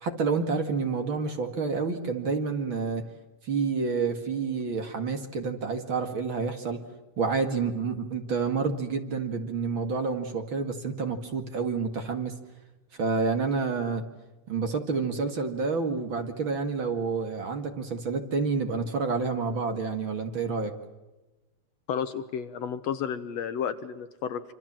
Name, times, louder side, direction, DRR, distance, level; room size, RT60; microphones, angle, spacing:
voice 1, 0.0-3.0 3.4-6.8 7.2-12.3 12.9-14.0 14.5-20.7, right 4 dB, 45° right, 6 dB, 2.4 m, -29 dB
voice 2, 21.9-24.4, left 8 dB, 65° left, 11 dB, 2.0 m, -32 dB
27.0 x 26.0 x 7.5 m, 1.1 s
omnidirectional pair, 3.5 m